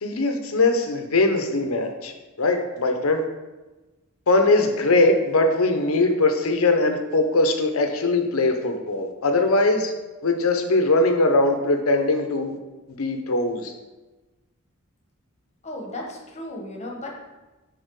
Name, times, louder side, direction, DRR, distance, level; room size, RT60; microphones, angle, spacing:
voice 1, 0.0-2.1 2.4-3.2 4.3-9.9 10.2-12.6 12.9-13.7, left 2 dB, 80° left, 5 dB, 0.8 m, -21 dB
voice 2, 15.6-17.1, left 1 dB, 30° left, -1 dB, 1.2 m, -35 dB
6.6 x 4.1 x 4.8 m, 1.1 s
head